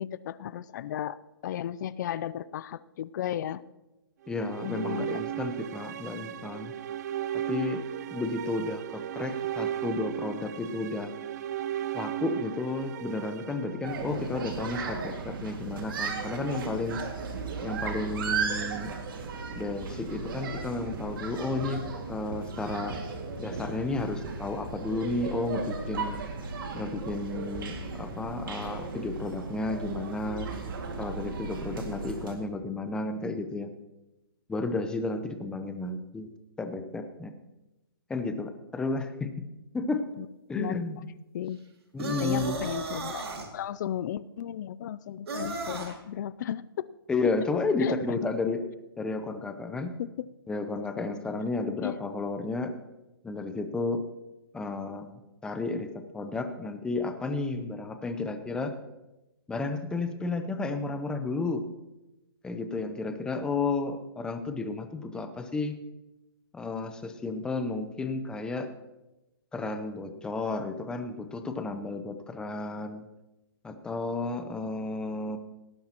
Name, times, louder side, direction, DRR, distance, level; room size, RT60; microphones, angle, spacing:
voice 1, 0.0-3.6 4.6-5.2 40.2-40.3 40.5-40.8 41.3-41.6 42.2-43.3 43.5-46.9 47.8-48.2 50.0-50.1 51.8-52.0, left 10 dB, 50° left, 18 dB, 0.5 m, -34 dB
sound 1, 4.2-14.5, right 12 dB, 45° right, 0.4 m, -36 dB
voice 2, 4.3-6.7 7.3-7.9 8.1-11.1 11.9-17.0 17.6-19.0 19.5-23.0 23.4-26.2 26.7-30.5 31.0-33.7 34.5-36.3 36.6-37.3 38.1-39.5 39.7-40.1 40.5-41.0 41.9-42.6 47.1-48.6 49.0-50.0 50.5-52.7 53.2-54.0 54.5-55.1 55.4-58.7 59.5-61.6 62.4-65.8 66.5-68.7 69.5-73.0 73.6-75.4, left 3 dB, 5° left, 8 dB, 0.7 m, -32 dB
sound 2, 13.8-32.4, right 4 dB, 60° right, 2.1 m, -36 dB
sound 3, 42.0-43.5 45.3-45.9, right 3 dB, 80° right, 2.5 m, -34 dB
18.0 x 10.0 x 3.0 m, 0.99 s
hypercardioid pair, 150°, 13 cm